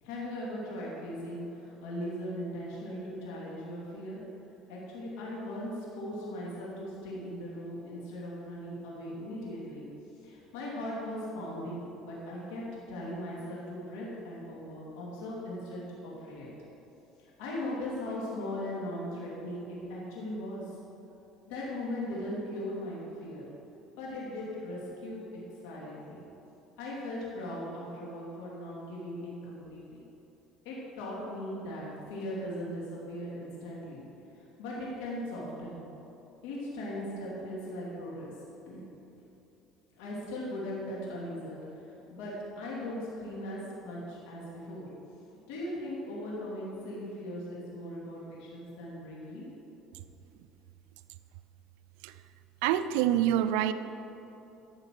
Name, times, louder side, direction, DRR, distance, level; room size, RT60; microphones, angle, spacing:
voice 1, 0.0-4.2 4.7-9.8 10.2-12.6 12.9-16.5 17.2-20.8 21.5-23.5 24.0-26.2 26.8-30.0 30.6-34.0 34.6-35.8 36.4-38.3 38.7-38.8 40.0-44.9 45.5-49.5, left 1 dB, 90° left, -5 dB, 2.8 m, -39 dB
voice 2, 52.6-53.7, right 11 dB, 85° right, 12 dB, 0.5 m, -26 dB
12.0 x 6.8 x 6.6 m, 2.9 s
cardioid pair, 120°, 0 cm